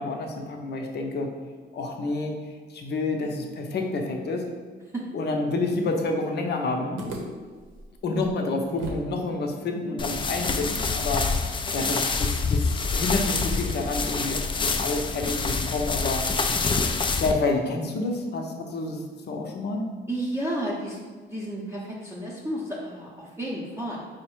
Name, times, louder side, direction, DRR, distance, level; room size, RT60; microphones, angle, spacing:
voice 1, 0.0-1.3 1.7-2.4 2.7-4.4 5.1-7.0 8.0-11.3 11.7-16.2 17.2-19.9, left 2 dB, 55° left, 2 dB, 0.7 m, -29 dB
sound 1, 7.0-9.1 9.4-9.5 10.0-13.2, right 1 dB, 80° right, 0.8 m, -41 dB
sound 2, 10.0-17.3, left 4 dB, 25° left, 0.4 m, -26 dB
voice 2, 20.1-21.0 21.3-24.0, right 1 dB, 15° right, -5 dB, 0.7 m, -32 dB
4.7 x 2.2 x 4.5 m, 1.6 s
cardioid pair, 90°, 20 cm